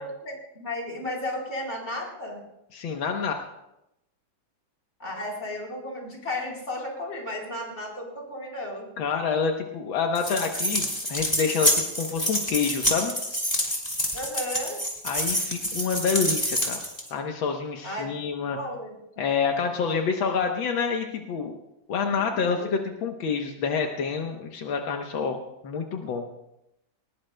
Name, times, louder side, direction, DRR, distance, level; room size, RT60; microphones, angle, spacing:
voice 1, 0.0-2.4 5.0-8.9 14.1-14.8 17.8-19.0 22.1-22.7, left 1 dB, 35° left, -2 dB, 4.2 m, -34 dB
voice 2, 2.7-3.3 9.0-13.1 15.0-16.8 17.1-18.6 19.2-21.6 21.9-25.4 25.6-26.3, left 5 dB, 80° left, 3 dB, 1.8 m, -27 dB
sound 1, 10.1-17.1, equal, 10° left, 2.3 m, -27 dB
20.5 x 19.5 x 2.2 m, 0.86 s
omnidirectional pair, 2.1 m